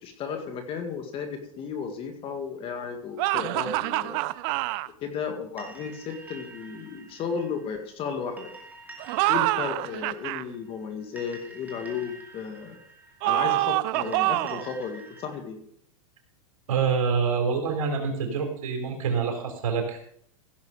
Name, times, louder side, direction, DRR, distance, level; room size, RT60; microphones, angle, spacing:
voice 1, 0.0-4.2 5.0-8.5 9.3-12.8 13.2-15.6, left 6 dB, 30° left, 5 dB, 2.0 m, -34 dB
sound 1, 3.2-4.9 9.0-10.4 13.2-14.7, right 19 dB, 45° right, 0.4 m, -26 dB
sound 2, 5.6-15.4, right 3 dB, 10° right, 2.4 m, -48 dB
voice 2, 16.7-20.1, right 5 dB, 75° right, 3 dB, 3.6 m, -26 dB
16.0 x 6.6 x 5.0 m, 0.68 s
supercardioid pair, 135°, 18 cm